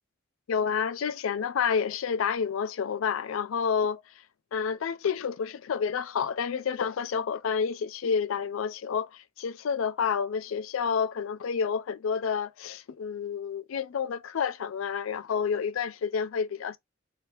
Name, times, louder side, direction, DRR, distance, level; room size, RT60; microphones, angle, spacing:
voice 1, 0.5-4.0 4.5-16.8, left 6 dB, 90° left, 0.4 m, -29 dB
3.3 x 2.7 x 2.8 m
head